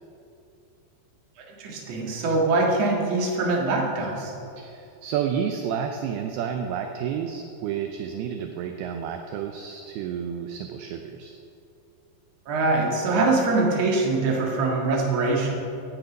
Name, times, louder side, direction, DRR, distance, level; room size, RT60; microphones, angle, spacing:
voice 1, 1.6-4.3 12.5-15.6, right 3 dB, 45° right, -1 dB, 2.4 m, -23 dB
voice 2, 4.6-11.3, right 8 dB, 80° right, 5 dB, 2.4 m, -30 dB
16.0 x 9.4 x 5.3 m, 2.7 s
omnidirectional pair, 5.0 m